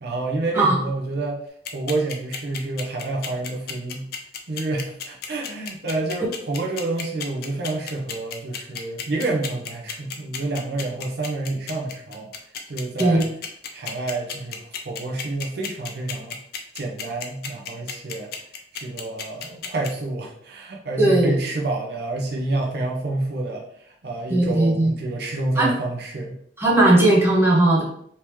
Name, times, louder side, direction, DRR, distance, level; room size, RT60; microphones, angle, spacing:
voice 1, 0.0-1.4 1.7-4.1 4.5-12.3 12.7-13.3 13.7-16.4 16.7-18.3 18.7-26.4, right 2 dB, 60° right, -1 dB, 0.6 m, -28 dB
sound 1, 1.6-19.9, left 8 dB, 55° left, 0.5 m, -32 dB
voice 2, 21.0-21.3 24.3-24.9 25.6-25.7 26.6-27.8, right 1 dB, 15° right, -5 dB, 0.8 m, -17 dB
3.4 x 2.9 x 3.0 m, 0.69 s
head